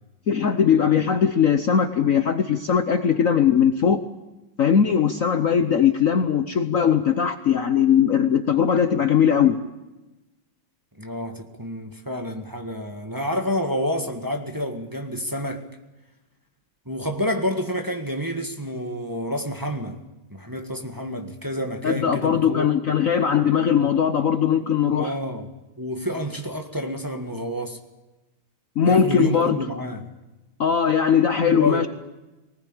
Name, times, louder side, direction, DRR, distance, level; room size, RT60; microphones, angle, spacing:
voice 1, 0.3-4.0 4.6-9.6 21.8-25.2 28.8-29.6 30.6-31.9, left 7 dB, 50° left, 1.1 m, -20 dB
voice 2, 11.0-15.6 16.8-20.0 20.3-22.7 24.9-25.5 25.8-27.8 28.8-30.1 31.4-31.9, equal, 10° right, 1.6 m, -29 dB
20.5 x 19.5 x 9.0 m
omnidirectional pair, 2.1 m